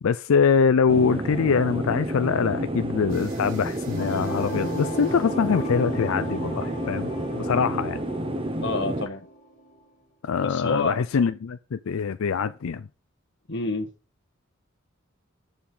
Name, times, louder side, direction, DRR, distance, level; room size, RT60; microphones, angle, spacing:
voice 1, 0.0-7.1 7.4-8.0 10.2-12.9, left 6 dB, 90° left, 0.4 m, -23 dB
sound 1, 0.9-9.1, right 1 dB, 25° right, 0.9 m, -30 dB
sound 2, 3.1-8.6, right 3 dB, 80° right, 3.6 m, -52 dB
sound 3, 4.0-9.8, equal, 35° left, 2.3 m, -38 dB
voice 2, 8.6-9.3 10.4-11.0 13.5-13.9, left 2 dB, 60° left, 1.4 m, -28 dB
7.2 x 7.1 x 5.5 m
head